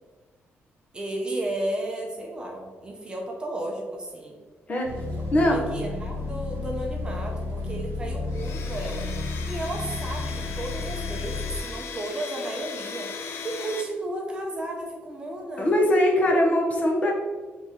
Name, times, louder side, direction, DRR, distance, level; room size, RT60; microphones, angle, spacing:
voice 1, 0.9-4.4 5.1-9.0 9.4-13.1 13.4-15.7, right 1 dB, 20° right, 0 dB, 0.7 m, -33 dB
voice 2, 4.7-5.0 5.3-5.6 15.6-17.1, left 1 dB, 35° left, 0 dB, 0.8 m, -21 dB
sound 1, 4.8-11.6, left 2 dB, 65° right, 0.7 m, -32 dB
Domestic sounds home sounds, 8.3-13.8, left 5 dB, 80° left, 0.5 m, -38 dB
3.5 x 3.2 x 4.2 m, 1.4 s
cardioid pair, 155°, 4 cm